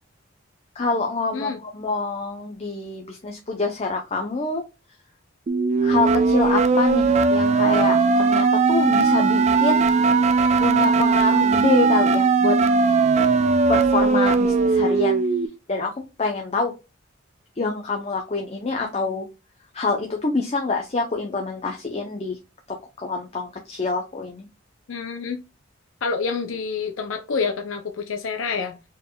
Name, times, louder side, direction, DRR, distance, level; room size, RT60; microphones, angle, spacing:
voice 1, 0.8-4.6 5.8-10.2 10.6-12.6 13.7-15.2 15.7-15.9 16.2-16.7 17.6-19.3 19.7-22.4 22.7-24.5, left 3 dB, 30° left, 0.7 m, -26 dB
sound 1, 5.5-15.5, right 4 dB, 35° right, 0.3 m, -19 dB
voice 2, 24.9-25.4 26.0-28.8, left 5 dB, 85° left, 0.6 m, -27 dB
4.5 x 3.4 x 2.3 m
head